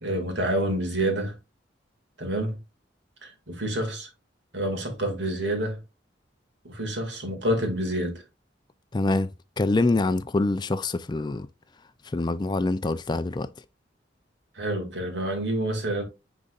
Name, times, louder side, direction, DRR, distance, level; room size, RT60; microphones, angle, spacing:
voice 1, 0.0-1.4 2.2-2.6 3.2-4.1 4.5-5.8 6.6-8.2 14.5-16.0, right 1 dB, 70° right, 2.1 m, -28 dB
voice 2, 8.9-9.3 9.6-11.5 12.0-13.5, left 2 dB, 25° left, 0.4 m, -25 dB
9.9 x 4.0 x 2.4 m
head